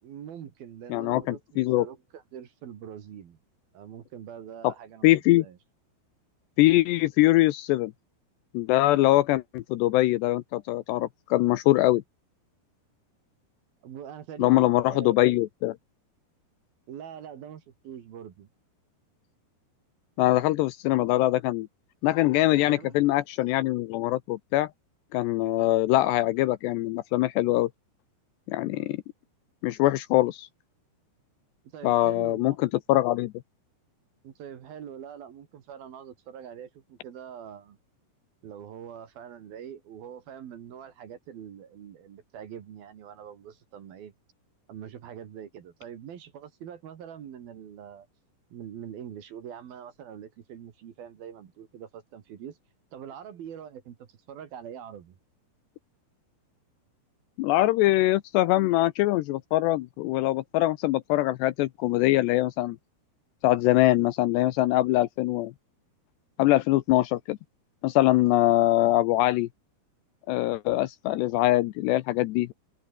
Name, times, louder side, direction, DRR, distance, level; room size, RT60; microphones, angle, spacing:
voice 1, 0.0-3.4 3.7-5.1 5.4-5.6 13.8-15.2 16.9-18.5 22.5-23.0 31.7-32.6 34.2-37.8 38.4-44.1 44.7-48.1 48.5-52.6 52.9-55.2, right 9 dB, 60° right, 3.6 m, -43 dB
voice 2, 0.9-1.9 4.6-4.7 5.0-5.5 6.6-7.9 8.5-12.0 14.4-15.8 20.2-21.7 22.0-24.7 25.1-27.7 28.5-29.0 29.6-30.5 31.8-33.3 57.4-62.8 63.4-65.5 66.4-67.4 67.8-69.5 70.3-72.5, left 17 dB, 80° left, 2.6 m, -23 dB
omnidirectional pair, 5.4 m